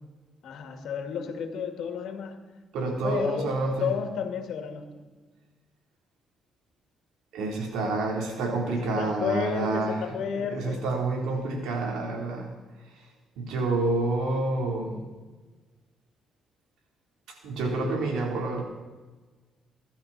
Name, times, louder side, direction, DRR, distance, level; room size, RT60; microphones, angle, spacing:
voice 1, 0.4-2.4 3.0-5.0 8.8-10.8, left 7 dB, 75° left, 5 dB, 2.3 m, -32 dB
voice 2, 2.7-3.9 7.3-9.9 10.5-12.5 13.4-15.0 17.4-18.6, right 2 dB, 90° right, 1 dB, 3.8 m, -28 dB
22.0 x 12.0 x 4.3 m, 1.3 s
cardioid pair, 90°, 0 cm